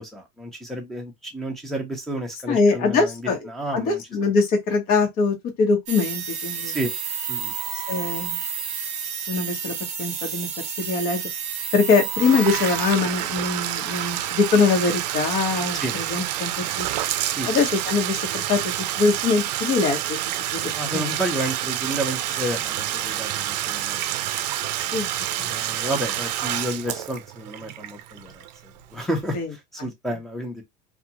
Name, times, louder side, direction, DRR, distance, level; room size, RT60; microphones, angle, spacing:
voice 1, 0.0-4.0 6.6-6.9 7.3-7.5 15.8-15.9 17.4-17.5 20.8-24.0 25.4-30.6, right 1 dB, ahead, 0.8 m, -31 dB
voice 2, 2.5-6.7 7.7-8.4 9.3-11.2 11.7-16.5 16.8-16.9 17.5-20.2 20.5-21.2 24.9-25.1 29.3-29.5, left 4 dB, 45° left, 1.1 m, -23 dB
sound 1, 5.9-12.9, right 7 dB, 35° right, 0.8 m, -30 dB
Bathtub (filling or washing), 12.1-28.8, right 13 dB, 80° right, 0.5 m, -28 dB
2.4 x 2.3 x 2.9 m
supercardioid pair, 145°, 21 cm